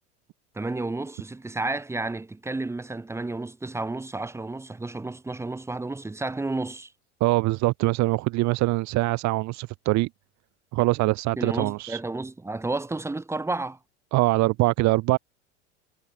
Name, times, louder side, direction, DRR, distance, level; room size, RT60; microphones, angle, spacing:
voice 1, 0.5-6.9 11.4-13.8, right 2 dB, 5° right, 1.0 m, -31 dB
voice 2, 7.2-10.1 10.7-12.0 14.1-15.2, right 21 dB, 50° right, 1.5 m, -23 dB
supercardioid pair, 105°, 35 cm